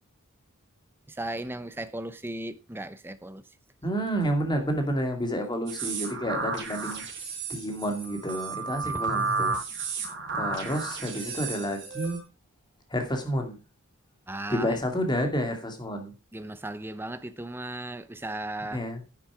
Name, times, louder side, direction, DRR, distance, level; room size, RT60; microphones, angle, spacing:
voice 1, 1.1-3.4 8.8-9.1 14.3-14.8 16.3-18.8, right 1 dB, 10° right, 0.6 m, -36 dB
voice 2, 3.8-7.0 7.5-9.5 10.3-12.2 12.9-13.6 14.5-16.1 18.7-19.0, equal, 20° left, 2.2 m, -29 dB
sound 1, 5.7-12.2, right 4 dB, 55° right, 4.4 m, -32 dB
10.5 x 7.4 x 4.8 m
head